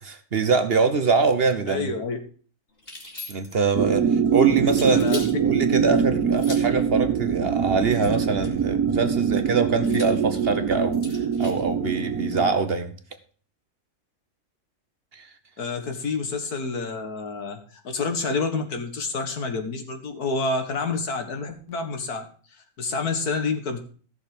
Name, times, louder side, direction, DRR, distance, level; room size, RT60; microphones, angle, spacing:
voice 1, 0.0-1.9 3.3-12.9 15.1-15.3, right 4 dB, 45° right, 9 dB, 1.1 m, -24 dB
voice 2, 1.7-2.2 4.9-5.2 15.6-23.8, left 4 dB, 85° left, 5 dB, 2.2 m, -28 dB
sound 1, 2.8-3.7 4.7-5.4 6.3-6.8 7.9-8.7 9.8-11.7, left 2 dB, 40° left, 3.1 m, -40 dB
sound 2, 3.7-12.5, right 7 dB, 90° right, 1.6 m, -23 dB
15.0 x 6.6 x 5.2 m, 0.41 s
omnidirectional pair, 1.6 m